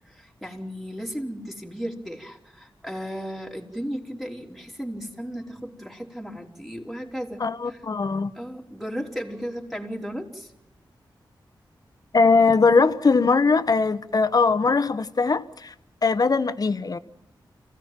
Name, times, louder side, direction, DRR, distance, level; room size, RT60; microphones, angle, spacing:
voice 1, 0.1-7.8 8.4-10.5, equal, ahead, 3.4 m, -35 dB
voice 2, 7.4-8.3 12.1-15.7 16.0-17.0, left 4 dB, 50° left, 1.0 m, -20 dB
26.5 x 16.5 x 7.5 m
wide cardioid pair, 75°, 8 cm